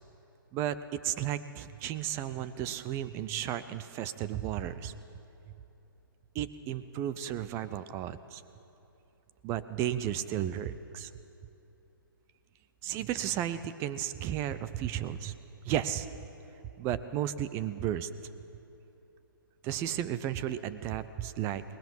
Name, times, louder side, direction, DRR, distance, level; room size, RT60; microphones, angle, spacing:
voice 1, 0.5-4.9 6.3-8.4 9.4-11.1 12.8-15.3 15.6-16.1 16.8-18.1 19.6-21.6, right 11 dB, 20° right, 13 dB, 0.7 m, -33 dB
22.5 x 19.5 x 7.3 m, 3.0 s
figure-of-eight pair, 135°, 12 cm